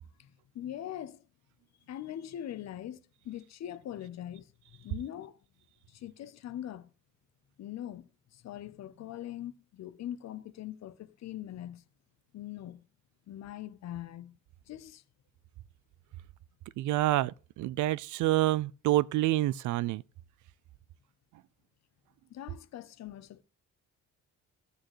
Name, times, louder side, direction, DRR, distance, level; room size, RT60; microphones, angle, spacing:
voice 1, 0.2-1.3 1.9-3.0 3.2-4.5 4.7-5.4 5.9-6.9 7.6-11.8 12.3-12.8 13.3-14.4 14.7-15.0 22.3-23.4, left 11 dB, 60° left, 0.7 m, -42 dB
voice 2, 16.8-20.0, right 16 dB, 75° right, 0.4 m, -27 dB
15.5 x 6.4 x 3.1 m
cardioid pair, 90°, 30 cm